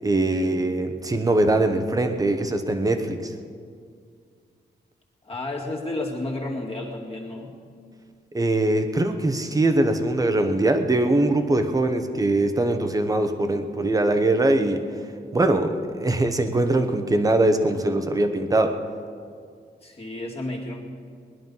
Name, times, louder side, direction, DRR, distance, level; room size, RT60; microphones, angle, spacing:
voice 1, 0.0-3.3 8.3-14.8 15.3-18.8, right 2 dB, 20° right, 7 dB, 1.0 m, -22 dB
voice 2, 5.2-7.6 19.8-20.8, left 2 dB, 35° left, -1 dB, 2.3 m, -31 dB
20.0 x 11.5 x 5.5 m, 2.2 s
wide cardioid pair, 140°, 18 cm